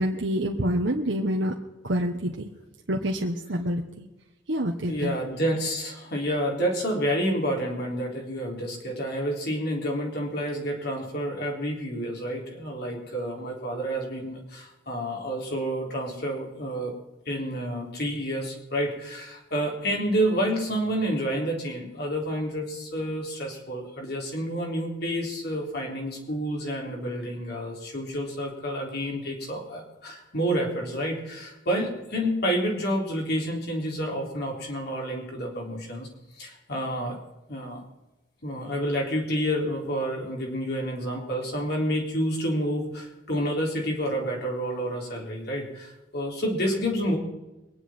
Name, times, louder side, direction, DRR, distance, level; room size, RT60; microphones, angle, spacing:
voice 1, 0.0-1.5 1.8-2.5 2.9-4.1 4.5-5.1, equal, 75° right, 0 dB, 1.4 m, -27 dB
voice 2, 4.9-16.9 17.3-36.1 36.4-37.2 37.5-37.8 38.4-47.2, equal, 60° left, -1 dB, 4.0 m, -29 dB
24.0 x 10.0 x 4.6 m, 1.0 s
head